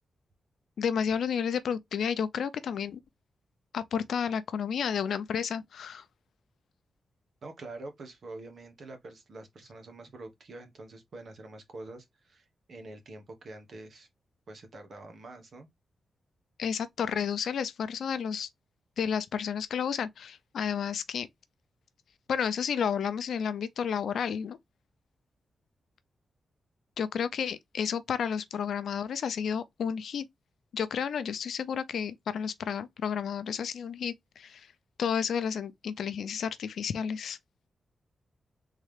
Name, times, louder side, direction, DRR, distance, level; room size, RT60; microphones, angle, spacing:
voice 1, 0.8-3.0 3.7-6.0 16.6-18.5 19.0-21.3 22.3-24.6 27.0-30.2 30.7-34.7 35.0-37.4, left 7 dB, 80° left, 0.5 m, -31 dB
voice 2, 7.4-14.1 14.5-15.7, right 2 dB, 50° right, 1.2 m, -46 dB
3.7 x 3.2 x 3.3 m
wide cardioid pair, 175°, 0 cm